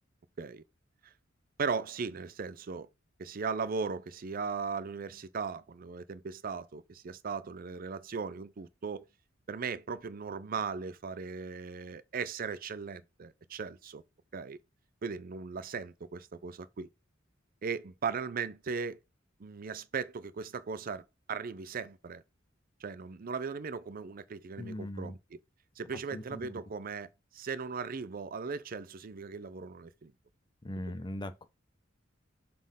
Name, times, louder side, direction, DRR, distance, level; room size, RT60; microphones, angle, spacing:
voice 1, 1.6-2.9 3.2-9.1 9.5-14.0 14.3-14.6 15.0-16.9 17.6-19.0 19.4-22.2 22.8-25.4 25.8-30.1, right 5 dB, 45° right, 0.5 m, -38 dB
voice 2, 24.6-25.2 26.1-26.6 30.6-31.5, left 1 dB, 25° left, 0.6 m, -40 dB
7.4 x 4.3 x 3.6 m
head